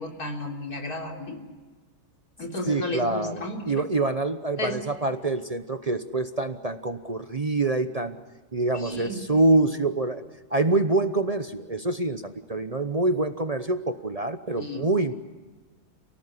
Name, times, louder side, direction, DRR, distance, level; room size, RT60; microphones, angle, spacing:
voice 1, 0.0-1.4 2.4-3.9 4.6-4.8 8.7-9.3 14.5-14.9, left 2 dB, 85° left, 1 dB, 4.1 m, -33 dB
voice 2, 2.7-8.2 8.5-10.2 10.5-15.1, right 2 dB, 30° right, 9 dB, 0.9 m, -26 dB
29.0 x 18.5 x 9.8 m, 1.3 s
omnidirectional pair, 1.6 m